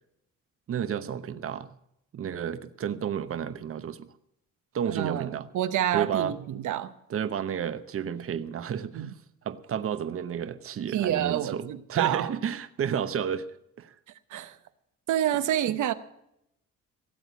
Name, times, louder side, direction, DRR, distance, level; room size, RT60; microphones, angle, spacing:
voice 1, 0.7-1.7 2.1-4.1 4.7-5.5 5.9-6.4 7.1-9.1 9.4-13.5 13.8-14.0, right 8 dB, 45° right, 0.9 m, -31 dB
voice 2, 4.9-6.9 8.9-9.1 10.9-12.3 14.3-14.6 15.1-15.9, right 11 dB, 75° right, 1.0 m, -28 dB
17.0 x 7.9 x 8.2 m
cardioid pair, 90°, 30 cm